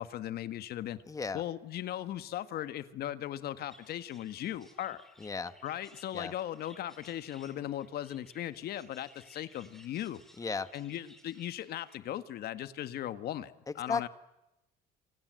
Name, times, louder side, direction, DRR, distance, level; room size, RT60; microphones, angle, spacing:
voice 1, 0.0-1.0 1.3-5.0 5.6-10.2 10.7-14.1, left 12 dB, 70° left, 13 dB, 1.7 m, -38 dB
voice 2, 1.1-1.4 5.2-5.5 6.1-6.3 10.4-10.7 13.9-14.1, left 4 dB, 20° left, 13 dB, 1.2 m, -34 dB
sound 1, 3.7-12.0, left 1 dB, ahead, 4.2 m, -59 dB
28.0 x 27.5 x 7.8 m, 0.91 s
cardioid pair, 110°, 17 cm